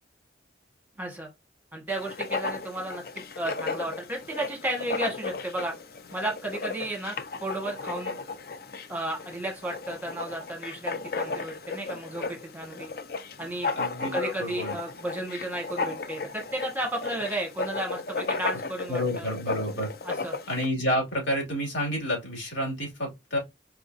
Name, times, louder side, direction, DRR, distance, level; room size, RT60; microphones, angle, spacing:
voice 1, 1.0-1.3 1.7-3.0 3.3-5.7 6.1-7.1 7.4-8.2 8.9-12.9 13.4-13.7 14.1-19.3 20.0-20.3, right 1 dB, 10° right, 1.4 m, -33 dB
Writing, 1.9-20.7, left 4 dB, 55° left, 0.5 m, -35 dB
voice 2, 13.8-14.7 18.9-19.9 20.5-23.4, equal, 90° left, 2.6 m, -29 dB
4.7 x 3.6 x 2.7 m
head